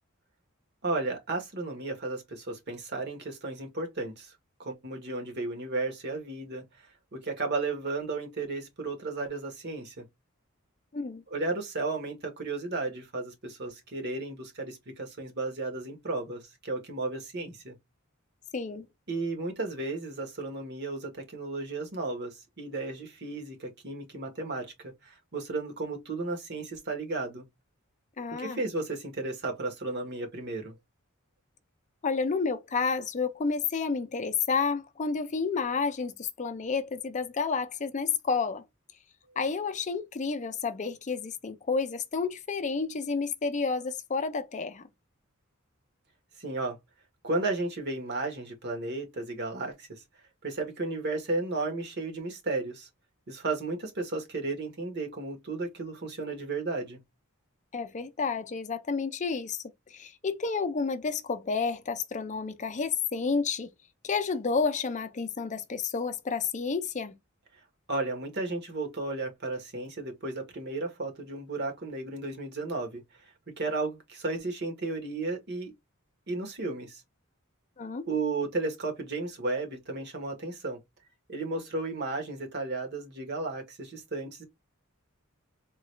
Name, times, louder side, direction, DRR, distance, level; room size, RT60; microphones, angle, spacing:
voice 1, 0.8-4.3 4.6-6.6 7.1-10.0 11.3-17.7 19.1-27.4 28.4-30.7 46.4-46.8 47.2-50.0 50.4-52.9 53.3-57.0 67.9-73.0 73.6-75.7 76.3-77.0 78.1-80.8 81.3-84.4, right 3 dB, 55° right, 1.3 m, -34 dB
voice 2, 18.5-18.9 28.2-28.6 32.0-38.6 39.4-44.9 57.7-59.6 59.9-63.7 64.0-67.1 77.8-78.1, left 5 dB, 35° left, 0.5 m, -30 dB
3.8 x 2.4 x 3.2 m
head